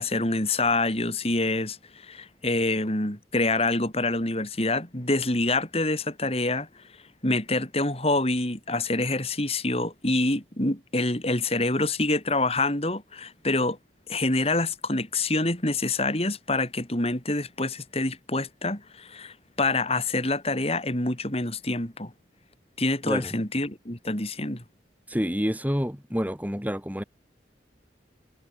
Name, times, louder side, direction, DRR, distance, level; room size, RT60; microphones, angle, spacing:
voice 1, 0.0-6.7 7.2-13.8 14.1-22.1 22.8-24.6, left 2 dB, 35° left, 4.8 m, -26 dB
voice 2, 23.0-23.3 25.1-27.0, equal, 10° right, 6.0 m, -28 dB
head